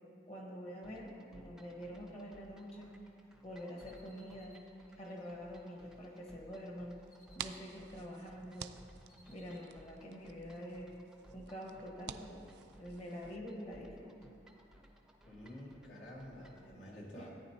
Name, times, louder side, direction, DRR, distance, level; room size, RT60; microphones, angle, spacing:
voice 1, 0.3-3.0 3.4-4.6 5.0-7.0 7.3-8.8 9.3-11.0 11.3-12.4 12.8-14.1 17.1-17.3, equal, 35° left, -1 dB, 1.2 m, -46 dB
sound 1, 0.8-16.7, equal, 5° right, 0.5 m, -61 dB
sound 2, 2.9-6.2 6.6-8.4 8.6-9.7, left 1 dB, 50° left, 1.1 m, -68 dB
sound 3, 7.1-13.4, right 9 dB, 70° right, 0.3 m, -51 dB
voice 2, 15.3-17.3, left 1 dB, 80° left, -4 dB, 2.0 m, -50 dB
14.0 x 9.4 x 2.7 m, 2.5 s
head